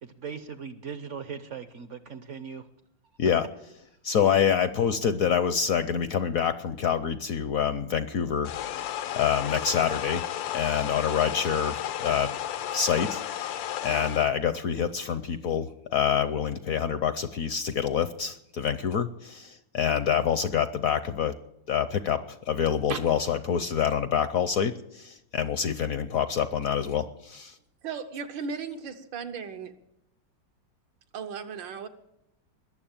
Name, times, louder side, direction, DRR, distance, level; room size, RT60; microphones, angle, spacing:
voice 1, 0.0-2.7, right 6 dB, 60° right, 11 dB, 0.8 m, -39 dB
voice 2, 4.0-8.5 9.1-10.2 10.5-12.3 12.7-13.5 13.8-21.3 21.7-27.5, left 8 dB, 65° left, 12 dB, 0.9 m, -26 dB
sound 1, 8.4-14.3, left 11 dB, 90° left, 1.5 m, -33 dB
voice 3, 27.8-29.7 31.1-31.9, right 6 dB, 85° right, 6 dB, 1.8 m, -35 dB
21.0 x 7.3 x 7.2 m, 0.82 s
omnidirectional pair, 2.0 m